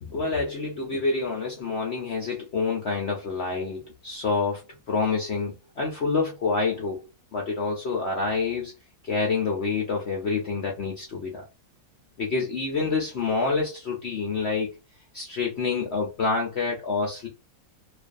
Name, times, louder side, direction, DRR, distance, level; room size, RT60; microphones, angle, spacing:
voice 1, 0.0-4.6 4.9-7.0 7.3-8.7 9.0-11.4 12.2-14.8 15.1-17.3, left 4 dB, 70° left, 0.6 m, -27 dB
2.5 x 2.4 x 2.4 m
omnidirectional pair, 1.9 m